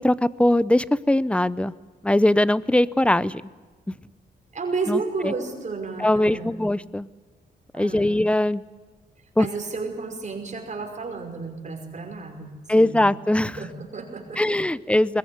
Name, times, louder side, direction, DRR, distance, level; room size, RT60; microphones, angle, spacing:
voice 1, 0.0-1.7 2.0-3.4 4.9-5.3 6.0-7.1 7.7-8.6 9.4-9.5 12.7-13.5 14.4-15.2, left 1 dB, 5° left, 18 dB, 0.7 m, -21 dB
voice 2, 4.5-6.6 7.7-8.2 9.4-12.5 12.7-13.0 13.4-14.6, right 4 dB, 40° right, 2 dB, 5.4 m, -32 dB
21.5 x 21.5 x 9.5 m, 1.3 s
cardioid pair, 105°, 18 cm